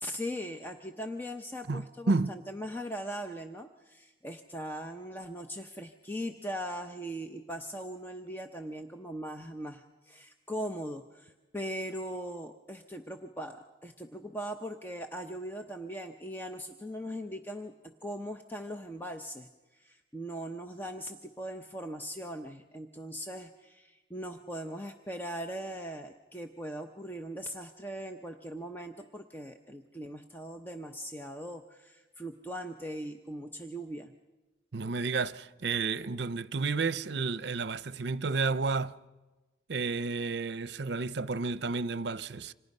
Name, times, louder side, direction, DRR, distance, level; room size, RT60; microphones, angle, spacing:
voice 1, 0.0-17.7 18.0-34.1, equal, 10° left, 0.8 m, -40 dB
voice 2, 1.7-2.3 34.7-38.9 39.7-42.5, right 4 dB, 70° right, 0.7 m, -31 dB
29.0 x 26.5 x 5.5 m
head